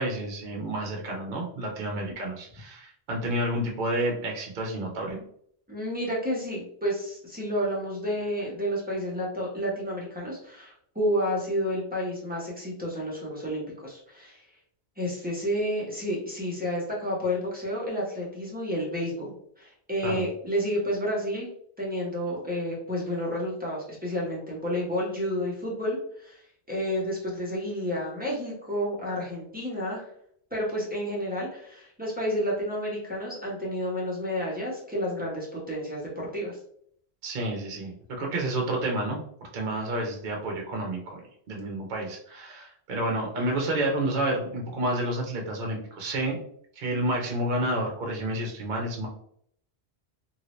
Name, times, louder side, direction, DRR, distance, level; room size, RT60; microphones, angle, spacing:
voice 1, 0.0-5.2 20.0-20.2 37.2-39.2 39.5-41.2 41.5-46.4 46.8-49.1, right 1 dB, 55° right, 1 dB, 0.8 m, -30 dB
voice 2, 5.7-14.4 15.0-21.5 21.8-26.4 26.7-30.1 30.5-36.6, equal, 10° right, -5 dB, 1.0 m, -30 dB
2.8 x 2.7 x 3.0 m, 0.66 s
omnidirectional pair, 1.1 m